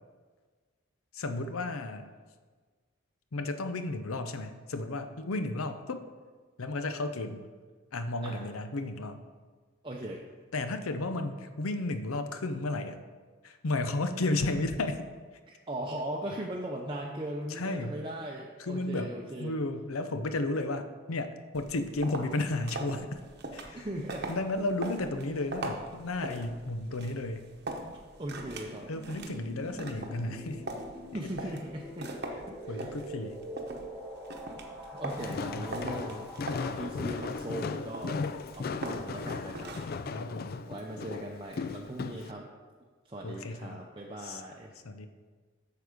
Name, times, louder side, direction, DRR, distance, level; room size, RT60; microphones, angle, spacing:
voice 1, 1.1-2.1 3.3-6.0 6.6-7.5 7.9-9.2 10.5-13.0 13.4-15.1 17.5-18.0 18.6-23.2 23.5-23.9 24.3-27.5 28.9-30.6 31.1-31.2 32.7-33.4 35.4-35.9 40.1-40.7 43.2-43.8 44.2-44.4 44.8-45.1, left 2 dB, 85° left, 9 dB, 0.7 m, -33 dB
voice 2, 9.8-10.2 15.5-19.5 23.7-24.3 27.8-28.9 30.8-32.1 32.5-32.9 34.9-36.3 36.7-38.2 38.5-39.8 40.0-40.1 40.7-42.5 43.0-44.7, right 1 dB, 25° right, -1 dB, 0.6 m, -39 dB
sound 1, 21.5-40.0, right 2 dB, 50° right, 0.9 m, -42 dB
sound 2, 28.3-37.8, equal, 5° left, 1.1 m, -45 dB
Walk footsteps, 35.1-42.3, left 4 dB, 45° left, 0.3 m, -37 dB
8.1 x 6.7 x 5.0 m, 1.5 s
head